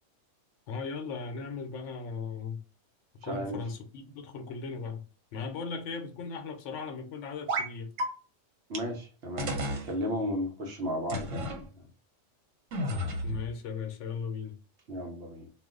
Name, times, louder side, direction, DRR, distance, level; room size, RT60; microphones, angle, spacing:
voice 1, 0.7-2.6 3.2-5.0 5.3-7.9 13.2-14.6, left 5 dB, 75° left, 0.9 m, -37 dB
voice 2, 3.2-3.6 8.7-11.9 14.9-15.5, equal, 60° right, 0.9 m, -34 dB
sound 1, 7.5-7.7 8.0-8.1 8.7-8.8 9.4-9.9 11.1-11.6 12.7-13.4, right 1 dB, 85° right, 1.1 m, -31 dB
2.4 x 2.2 x 3.6 m
omnidirectional pair, 1.3 m